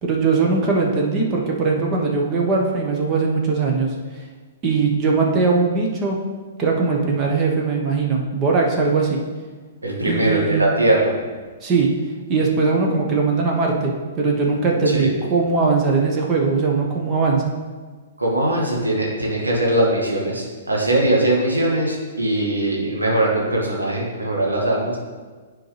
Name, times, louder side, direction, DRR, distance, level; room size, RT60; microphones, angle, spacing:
voice 1, 0.0-3.9 4.6-6.2 6.6-9.2 10.0-10.6 11.6-11.9 12.3-17.5, right 4 dB, 30° right, -1 dB, 1.3 m, -20 dB
voice 2, 9.8-11.1 14.9-15.1 18.2-25.0, right 1 dB, 85° right, -3 dB, 1.9 m, -21 dB
10.5 x 4.5 x 3.4 m, 1.4 s
figure-of-eight pair, 115°, 0 cm